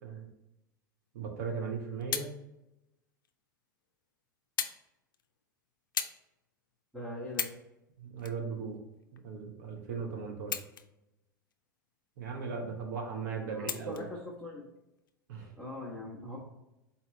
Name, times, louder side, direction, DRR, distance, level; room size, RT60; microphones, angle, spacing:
voice 1, 1.1-2.3 8.0-8.8 9.1-10.6 12.2-14.0 15.3-15.5, right 5 dB, 60° right, 1 dB, 1.1 m, -38 dB
sound 1, 1.6-2.4 3.2-3.3 4.6-4.8 5.1-5.4 5.9-6.2 6.7-6.8 7.3-7.7 8.2-9.2 10.4-11.1 11.5-11.6 13.7-14.1 15.0-15.1, left 8 dB, 75° left, 0.4 m, -36 dB
voice 2, 6.9-7.5 13.5-14.7 15.6-16.4, left 1 dB, ahead, -7 dB, 1.1 m, -41 dB
4.2 x 3.6 x 3.1 m, 0.92 s
figure-of-eight pair, 85°, 11 cm